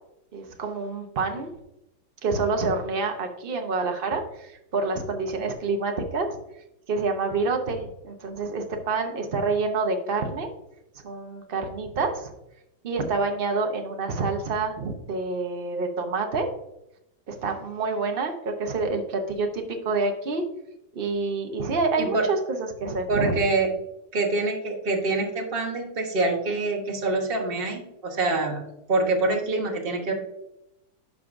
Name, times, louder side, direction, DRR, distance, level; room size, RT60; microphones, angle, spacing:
voice 1, 0.3-1.5 2.2-6.4 6.9-10.5 11.0-12.3 12.8-16.5 17.3-20.4 20.9-23.4, right 3 dB, 50° right, 4 dB, 0.6 m, -27 dB
voice 2, 23.1-23.7 24.1-30.1, right 3 dB, 35° right, 2 dB, 1.1 m, -25 dB
12.0 x 5.0 x 2.5 m, 0.85 s
omnidirectional pair, 2.1 m